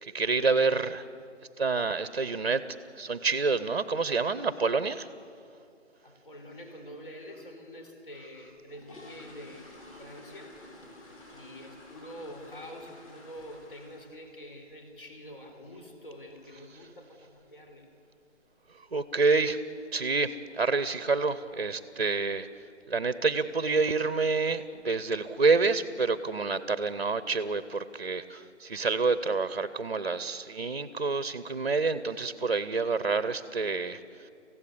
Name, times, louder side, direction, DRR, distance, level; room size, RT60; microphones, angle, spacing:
voice 1, 0.0-1.0 1.6-2.7 3.0-5.1 18.9-19.6 19.9-22.5 22.9-34.0, right 4 dB, 45° right, 14 dB, 0.8 m, -28 dB
voice 2, 6.0-10.5 11.3-17.9, equal, 45° left, 4 dB, 4.1 m, -46 dB
sound 1, 8.5-14.3 14.5-14.8 15.2-15.3 15.6-15.8 16.2-16.4 16.6-16.7 17.3-17.4 17.7-17.8 18.4-18.7 18.9-19.0 19.4-19.7 20.0-20.1 20.5-20.6 21.2-21.5 21.9-22.2 22.5-22.6 23.1-23.2 23.9-24.1 24.5-25.0 25.4-25.5, left 1 dB, 30° left, 5.6 m, -51 dB
26.5 x 16.0 x 8.4 m, 2.7 s
figure-of-eight pair, 150°, 36 cm